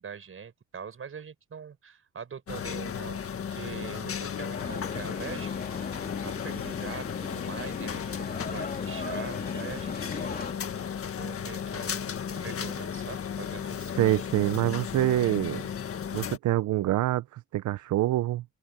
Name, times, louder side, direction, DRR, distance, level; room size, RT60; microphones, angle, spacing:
voice 1, 0.0-3.2 3.5-8.0 8.4-13.9, right 6 dB, 45° right, 5.7 m, -43 dB
sound 1, 2.5-16.4, left 8 dB, 50° left, 1.7 m, -35 dB
sound 2, 4.5-10.5, left 4 dB, 30° left, 2.9 m, -38 dB
voice 2, 14.0-15.6 16.1-18.4, right 15 dB, 75° right, 0.7 m, -26 dB
open air
cardioid pair, 90°, 30 cm